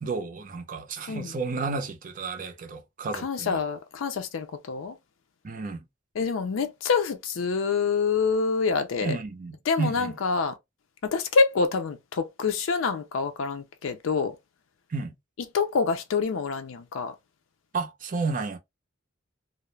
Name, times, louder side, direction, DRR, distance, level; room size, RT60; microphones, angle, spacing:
voice 1, 0.0-3.6 5.4-5.8 9.0-10.2 14.9-15.1 17.7-18.6, right 4 dB, 40° right, 0.5 m, -32 dB
voice 2, 3.1-5.0 6.2-9.2 9.7-10.6 11.0-14.4 15.5-17.1, left 5 dB, 80° left, 0.4 m, -26 dB
2.3 x 2.0 x 3.0 m
head